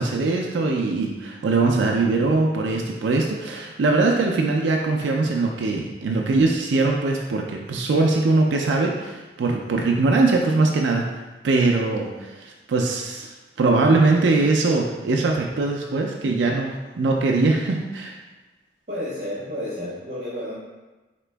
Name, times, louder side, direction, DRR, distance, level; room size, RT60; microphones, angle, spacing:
voice 1, 0.0-11.1 11.4-13.3 13.6-18.2, right 3 dB, 80° right, 0 dB, 0.4 m, -21 dB
voice 2, 18.9-20.5, left 1 dB, 45° right, -8 dB, 0.9 m, -31 dB
4.1 x 2.9 x 3.3 m, 1.2 s
head